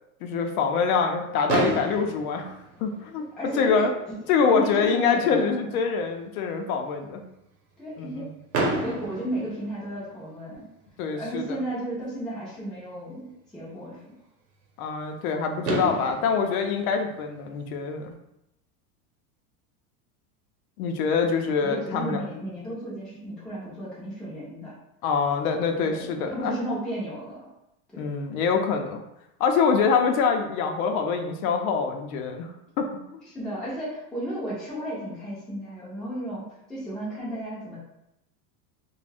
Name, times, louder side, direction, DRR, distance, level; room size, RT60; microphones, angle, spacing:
voice 1, 0.2-2.5 2.8-3.3 3.6-3.9 4.3-7.2 8.0-8.3 11.0-11.6 14.8-18.1 20.8-22.2 25.0-26.6 28.0-29.0 29.4-32.5 32.8-32.9, left 5 dB, 75° left, 4 dB, 0.6 m, -25 dB
Fireworks, 1.5-3.5 4.3-4.4 4.6-4.8 5.1-5.2 8.5-10.4 12.1-12.2 15.2-15.3 15.6-17.9, right 2 dB, 65° right, 0.9 m, -31 dB
voice 2, 3.4-4.3 4.5-5.7 7.8-8.3 8.7-10.7 11.2-14.0 21.4-24.7 25.8-27.5 27.9-28.1 33.3-36.4 36.7-37.8, right 1 dB, ahead, -9 dB, 0.4 m, -34 dB
2.5 x 2.2 x 3.3 m, 0.84 s
supercardioid pair, 155°, 44 cm